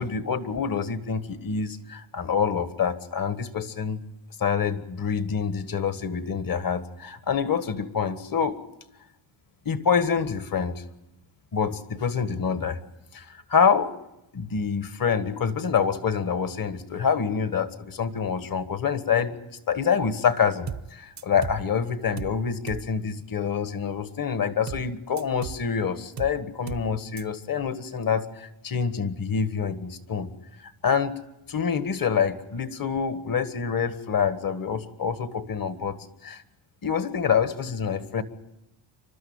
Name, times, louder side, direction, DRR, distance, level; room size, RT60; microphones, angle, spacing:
voice 1, 0.0-4.0 4.4-8.6 9.6-10.8 11.5-12.8 13.1-13.9 14.3-19.4 19.7-30.3 30.6-31.2 31.5-36.4 36.8-38.2, left 6 dB, 45° left, 11 dB, 1.7 m, -26 dB
sound 1, 20.7-20.9 21.2-21.7 22.2-22.4 22.7-22.9 24.7-24.9 25.2-25.7 26.2-26.4 26.7-26.9 27.2-27.3, right 8 dB, 35° right, 0.8 m, -35 dB
27.5 x 12.5 x 8.9 m, 0.90 s
cardioid pair, 100°, 48 cm